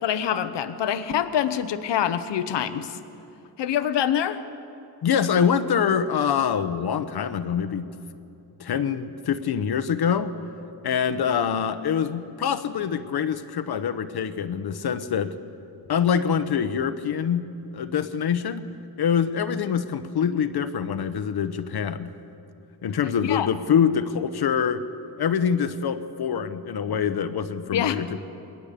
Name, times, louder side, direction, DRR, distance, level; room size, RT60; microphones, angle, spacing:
voice 1, 0.0-3.0 3.6-4.4 23.2-23.5 27.7-28.0, left 9 dB, 90° left, 12 dB, 1.0 m, -25 dB
voice 2, 5.0-7.9 8.6-10.3 10.8-15.3 15.9-17.5 17.7-18.7 19.0-22.1 22.8-24.8 25.2-28.2, left 7 dB, 65° left, 11 dB, 1.0 m, -25 dB
21.0 x 19.0 x 6.8 m, 2.7 s
wide cardioid pair, 120°, 41 cm